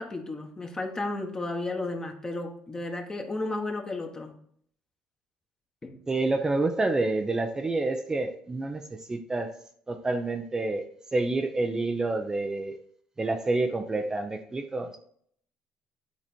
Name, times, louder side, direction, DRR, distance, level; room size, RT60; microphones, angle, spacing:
voice 1, 0.0-4.3 5.8-6.0, left 2 dB, 25° left, 3 dB, 1.5 m, -33 dB
voice 2, 6.1-9.5 9.9-10.8 11.1-12.8 13.2-15.0, right 2 dB, 20° right, 5 dB, 0.7 m, -28 dB
8.8 x 4.1 x 4.4 m, 0.65 s
supercardioid pair, 80°, 3 cm